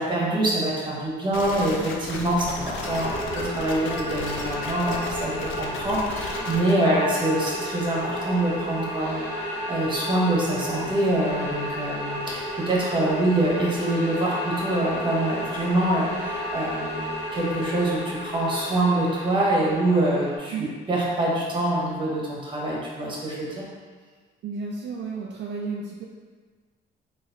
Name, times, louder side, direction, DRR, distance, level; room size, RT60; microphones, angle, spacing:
voice 1, 0.0-23.6, right 1 dB, 25° right, -4 dB, 1.2 m, -25 dB
sound 1, 1.3-6.7, left 3 dB, 80° left, 0.6 m, -35 dB
sound 2, 2.8-20.4, equal, 60° left, 1.0 m, -32 dB
voice 2, 24.4-26.0, right 4 dB, 60° right, -2 dB, 0.4 m, -32 dB
3.9 x 3.1 x 3.1 m, 1.5 s
cardioid pair, 90°, 20 cm